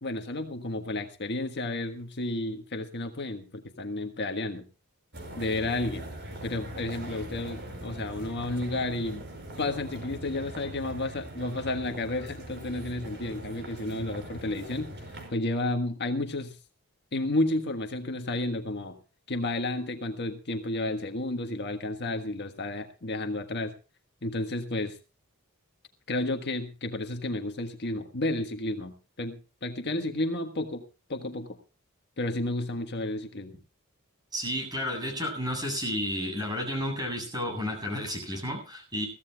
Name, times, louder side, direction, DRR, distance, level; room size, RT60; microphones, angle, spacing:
voice 1, 0.0-4.6 5.4-6.0 6.4-9.2 9.6-14.9 15.3-16.6 17.1-19.0 19.3-23.7 24.2-25.0 26.1-30.8 31.1-31.6 32.2-33.6, left 2 dB, 50° left, 5 dB, 1.5 m, -31 dB
sound 1, 5.1-15.3, right 1 dB, 50° right, 5.6 m, -41 dB
voice 2, 34.3-39.1, left 1 dB, 20° right, 4 dB, 7.6 m, -32 dB
22.5 x 15.5 x 2.4 m, 0.33 s
head